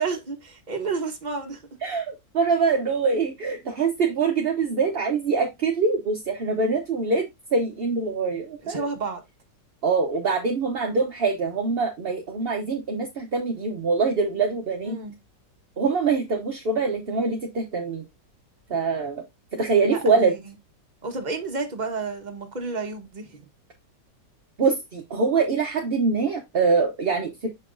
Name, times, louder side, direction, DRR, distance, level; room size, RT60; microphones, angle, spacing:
voice 1, 0.0-1.6 8.6-9.2 10.9-11.1 14.8-15.2 19.9-20.5 21.0-23.5, right 4 dB, 30° right, 1.2 m, -31 dB
voice 2, 1.8-7.2 7.5-8.9 9.8-15.0 15.8-18.0 18.7-19.2 19.5-20.3 24.6-27.5, right 4 dB, 45° right, 0.9 m, -24 dB
6.8 x 5.7 x 2.6 m
omnidirectional pair, 1.9 m